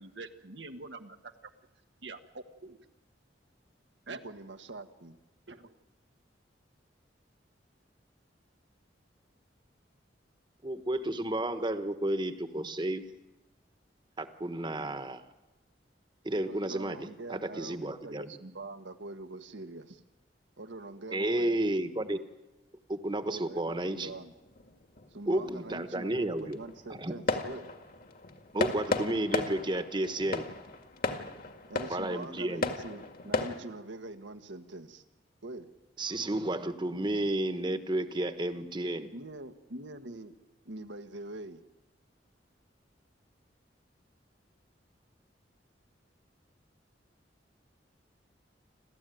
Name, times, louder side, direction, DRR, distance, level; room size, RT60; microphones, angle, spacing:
voice 1, 0.0-1.3 2.0-2.8 4.1-4.2 5.5-5.7, right 3 dB, 70° right, 6 dB, 1.4 m, -45 dB
voice 2, 4.1-5.2 16.3-20.0 20.6-21.7 23.2-24.3 25.1-27.7 31.7-35.0 35.4-35.7 39.1-40.3 40.6-41.6, right 2 dB, 85° right, 7 dB, 1.6 m, -44 dB
voice 3, 10.6-13.1 14.2-15.2 16.2-18.3 21.1-22.2 22.9-24.1 25.3-26.6 27.0-27.1 28.5-30.5 31.9-32.6 36.0-39.1, right 1 dB, 25° right, 10 dB, 1.3 m, -32 dB
sound 1, 23.6-33.6, left 2 dB, 50° left, 2.0 m, -36 dB
29.0 x 13.5 x 9.3 m, 1.1 s
head